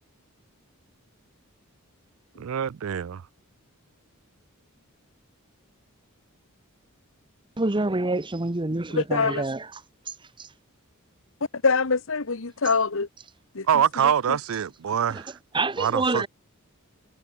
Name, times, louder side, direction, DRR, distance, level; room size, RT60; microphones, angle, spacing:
voice 1, 2.4-3.2 13.7-15.3 15.8-16.3, right 8 dB, 70° right, 0.4 m, -24 dB
voice 2, 7.6-9.7 15.1-15.2 15.5-16.3, right 2 dB, 25° right, 1.0 m, -26 dB
voice 3, 8.9-9.4 11.6-13.1 13.5-13.7 14.0-14.4, left 4 dB, 65° left, 1.2 m, -24 dB
head